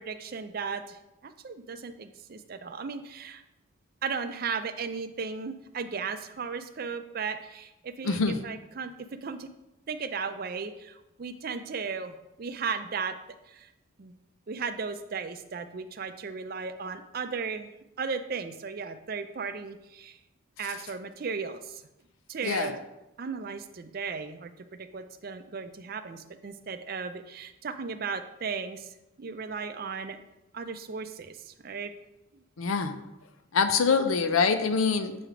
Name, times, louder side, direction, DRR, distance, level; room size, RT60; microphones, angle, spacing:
voice 1, 0.0-3.4 4.0-8.9 9.2-9.5 9.9-13.1 13.5-13.7 14.0-14.1 14.5-17.7 18.0-20.2 20.6-21.8 22.3-22.8 23.2-24.5 24.8-30.2 30.5-31.9, right 5 dB, 45° right, 9 dB, 0.4 m, -36 dB
voice 2, 8.0-8.4 22.4-22.7 32.6-32.9 33.5-35.1, left 5 dB, 85° left, 8 dB, 0.5 m, -24 dB
7.7 x 3.2 x 4.9 m, 0.92 s
head